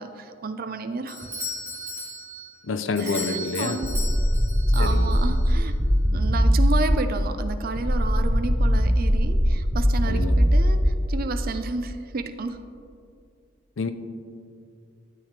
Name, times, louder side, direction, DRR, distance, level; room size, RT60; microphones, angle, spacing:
voice 1, 0.0-1.3 3.0-3.9 4.7-5.8 6.1-12.6, right 3 dB, 50° right, 9 dB, 0.5 m, -31 dB
Doorbell, 1.1-5.5, left 1 dB, 15° right, 2.1 m, -36 dB
voice 2, 2.6-3.8 4.8-5.2 10.1-10.4 13.8-13.9, left 4 dB, 75° left, 10 dB, 0.6 m, -28 dB
sound 1, 3.8-7.1 7.8-11.1, equal, ahead, 0.9 m, -21 dB
12.5 x 8.3 x 3.3 m, 2.4 s
head